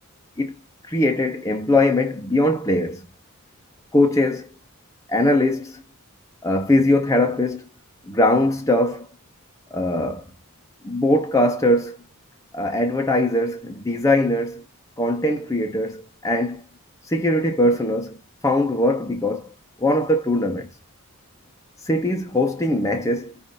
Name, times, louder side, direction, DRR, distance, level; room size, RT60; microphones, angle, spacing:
voice 1, 0.9-3.0 3.9-4.5 5.1-5.8 6.4-7.7 8.1-9.1 9.7-10.2 10.8-12.0 12.5-14.6 15.0-16.6 17.1-18.2 18.4-19.5 19.8-20.7 21.8-23.3, left 1 dB, 15° left, 0.6 m, -21 dB
5.3 x 2.6 x 3.7 m
head